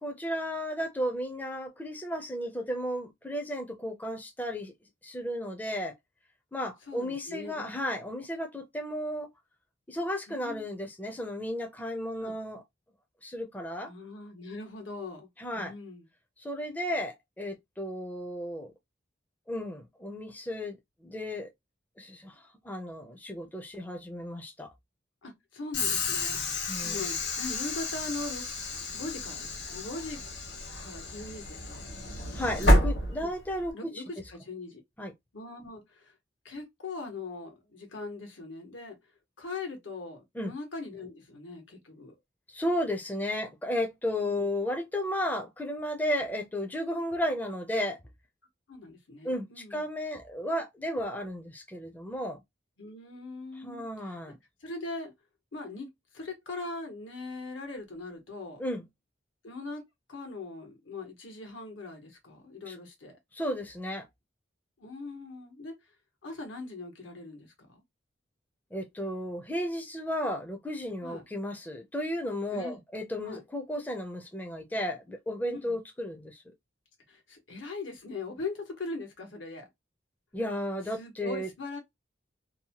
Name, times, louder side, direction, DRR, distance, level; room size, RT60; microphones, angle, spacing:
voice 1, 0.0-4.7 5.0-5.9 6.5-9.3 9.9-12.6 13.2-13.9 15.4-15.7 16.4-18.7 19.5-20.8 21.0-21.5 22.0-24.7 26.7-27.0 32.3-34.0 35.0-35.1 40.4-40.5 42.5-48.0 49.2-52.4 53.6-54.4 58.6-58.8 62.7-62.8 63.3-64.1 68.7-76.4 80.3-81.5, equal, 10° left, 0.4 m, -34 dB
voice 2, 6.9-7.8 10.3-10.7 12.2-12.3 13.9-15.3 15.5-16.1 25.2-28.4 28.9-30.2 30.8-31.9 33.2-33.3 33.7-34.8 35.3-36.1 36.4-39.0 39.4-42.1 44.2-44.5 48.7-49.8 52.8-54.2 54.6-55.1 55.5-55.9 56.1-58.6 59.4-59.8 60.1-63.2 64.8-65.8 66.2-67.8 71.0-71.2 72.5-72.8 73.2-73.4 75.5-75.7 77.1-79.7 80.9-81.8, left 3 dB, 90° left, 1.1 m, -41 dB
Train / Sliding door, 25.7-33.7, left 1 dB, 65° left, 1.0 m, -30 dB
2.7 x 2.1 x 2.8 m
head